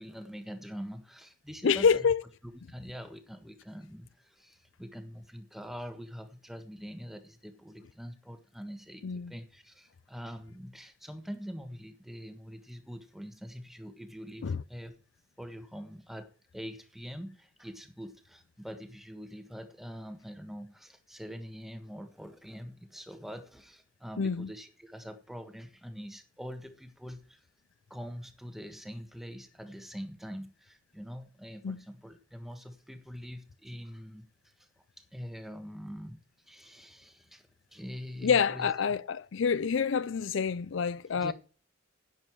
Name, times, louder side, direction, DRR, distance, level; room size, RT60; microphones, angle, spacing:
voice 1, 0.0-2.0 2.7-14.9 15.4-27.4 27.9-34.3 34.6-34.7 35.0-36.2 36.5-38.9 41.1-41.3, equal, ahead, 1.4 m, -44 dB
voice 2, 1.6-2.2 9.0-9.3 14.4-14.6 24.2-24.5 31.6-31.8 38.2-41.3, left 6 dB, 65° left, 0.4 m, -27 dB
11.0 x 9.3 x 4.7 m
head